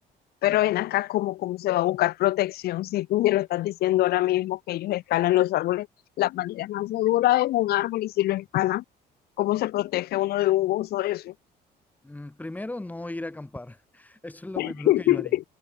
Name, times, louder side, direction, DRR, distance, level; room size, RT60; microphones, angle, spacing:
voice 1, 0.4-5.9 6.2-8.8 9.4-11.3 14.6-15.4, left 15 dB, 70° left, 0.7 m, -24 dB
voice 2, 12.0-15.4, left 2 dB, 10° left, 2.8 m, -37 dB
cardioid pair, 110°, 17 cm